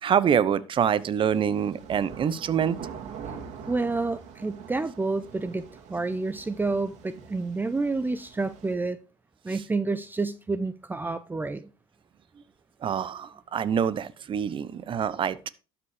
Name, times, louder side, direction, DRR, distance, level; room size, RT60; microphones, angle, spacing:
voice 1, 0.0-2.8 12.8-15.5, right 8 dB, 40° right, 0.9 m, -25 dB
sound 1, 0.7-8.7, right 7 dB, 60° right, 2.9 m, -44 dB
voice 2, 3.7-9.0 9.4-11.7, right 3 dB, 15° right, 0.7 m, -29 dB
12.5 x 6.0 x 5.0 m
supercardioid pair, 90°, 13 cm